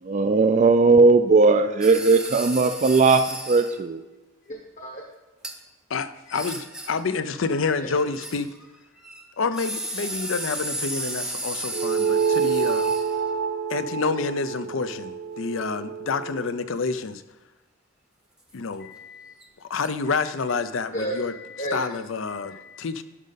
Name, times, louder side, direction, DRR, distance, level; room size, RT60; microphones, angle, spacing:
voice 1, 0.1-4.0, right 3 dB, 35° right, 8 dB, 0.4 m, -18 dB
sound 1, 1.8-3.8 5.4-5.5 6.3-7.1 7.9-8.7 9.0-13.3 19.4-19.5 19.8-19.9, right 1 dB, 5° right, 0.8 m, -34 dB
voice 2, 4.5-5.0 7.8-7.9 18.8-19.3 20.9-21.8 22.3-22.8, right 1 dB, 40° left, 0 dB, 1.1 m, -34 dB
voice 3, 5.9-8.5 9.4-12.9 13.7-17.2 18.5-18.9 19.6-21.3 21.7-23.0, left 4 dB, 70° left, 12 dB, 0.6 m, -28 dB
sound 2, 11.7-16.5, right 6 dB, 60° right, 1.1 m, -27 dB
12.0 x 5.2 x 4.0 m, 1.1 s
head